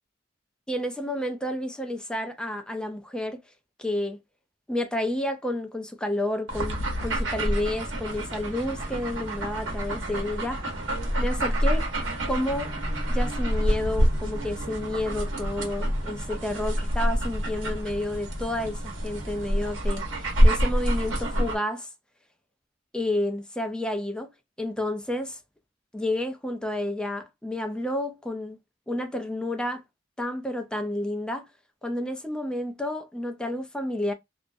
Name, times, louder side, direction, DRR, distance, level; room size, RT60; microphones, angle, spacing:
voice 1, 0.7-3.4 3.8-4.2 4.7-10.6 11.2-11.9 12.3-12.7 13.1-21.9 22.9-24.3 24.6-25.4 25.9-28.6 28.9-29.8 30.2-31.5 31.8-34.1, left 1 dB, 5° left, 0.4 m, -30 dB
sound 1, 6.5-21.6, equal, 80° right, 0.9 m, -27 dB
2.4 x 2.0 x 2.6 m
head